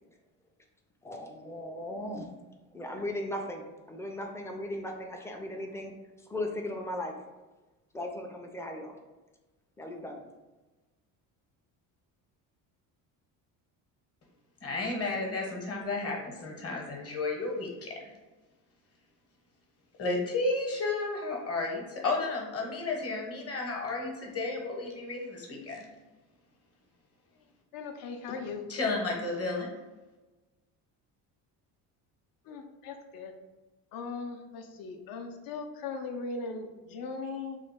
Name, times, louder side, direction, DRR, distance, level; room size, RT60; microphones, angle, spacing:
voice 1, 1.0-2.3 2.7-5.9 6.3-7.1 7.9-9.0 9.8-10.2, left 1 dB, 5° left, 2 dB, 0.4 m, -37 dB
voice 2, 14.6-17.9 20.0-25.8 28.7-29.7, left 3 dB, 35° left, 0 dB, 1.0 m, -32 dB
voice 3, 27.7-28.7 32.4-33.3 33.9-37.6, left 4 dB, 60° left, 4 dB, 0.6 m, -39 dB
3.1 x 2.3 x 3.5 m, 1.2 s
cardioid pair, 100°, 39 cm